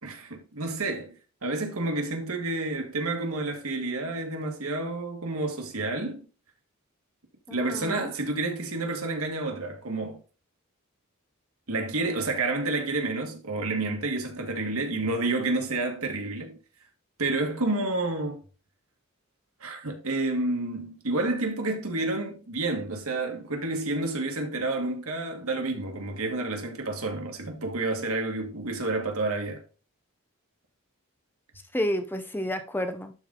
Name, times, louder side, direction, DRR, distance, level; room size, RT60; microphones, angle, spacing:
voice 1, 0.0-6.3 7.5-10.2 11.7-16.6 17.2-18.4 19.6-29.6, right 2 dB, 85° right, 1.8 m, -29 dB
voice 2, 7.5-8.1 31.7-33.1, left 1 dB, 10° left, 0.8 m, -30 dB
11.5 x 3.9 x 3.8 m
head